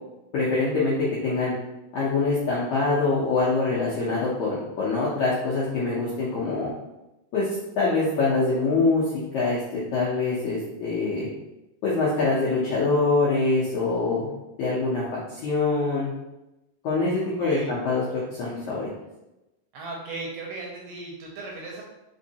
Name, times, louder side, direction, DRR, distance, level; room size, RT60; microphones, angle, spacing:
voice 1, 0.3-1.0 1.2-1.5 1.9-6.7 7.3-7.5 7.8-9.0 9.3-11.3 11.8-14.3 14.6-15.0 15.3-16.1 16.8-18.9, left 3 dB, 80° left, -7 dB, 1.6 m, -24 dB
voice 2, 17.2-17.7 19.7-21.8, right 3 dB, 80° right, -1 dB, 2.1 m, -37 dB
5.3 x 3.1 x 2.8 m, 0.97 s
omnidirectional pair, 4.3 m